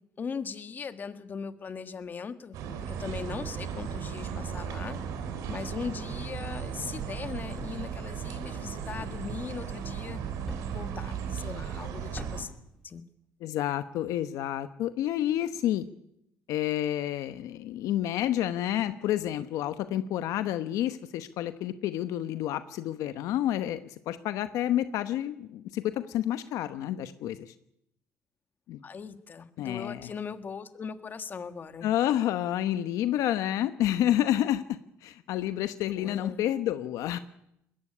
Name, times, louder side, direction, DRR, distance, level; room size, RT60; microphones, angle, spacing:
voice 1, 0.2-2.6 2.9-5.0 5.5-10.2 10.7-12.5 12.8-13.0 28.8-31.9 36.0-36.4, left 6 dB, 35° left, 10 dB, 1.6 m, -39 dB
sound 1, 2.5-12.4, right 7 dB, 75° right, 3.6 m, -36 dB
Thump thud, 7.6-7.9 9.0-9.3 10.5-10.9 12.1-12.6, left 1 dB, 5° left, 2.1 m, -42 dB
voice 2, 13.4-15.9 16.5-27.5 28.7-28.8 29.6-30.1 31.8-37.2, left 12 dB, 70° left, 11 dB, 1.0 m, -29 dB
21.0 x 15.5 x 9.9 m, 0.80 s
cardioid pair, 115°, 6 cm